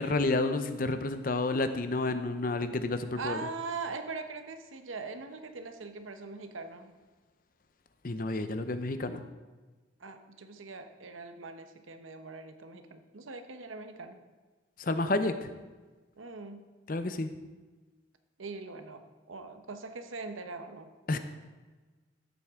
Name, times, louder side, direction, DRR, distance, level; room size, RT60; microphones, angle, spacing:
voice 1, 0.0-3.4 8.0-9.2 14.8-15.5 16.9-17.3 21.1-21.2, left 2 dB, 45° left, 9 dB, 0.6 m, -30 dB
voice 2, 3.1-6.9 10.0-14.2 16.2-16.6 18.4-19.0 19.3-20.9, right 4 dB, 90° right, 8 dB, 0.9 m, -41 dB
13.5 x 7.8 x 3.6 m, 1.3 s
head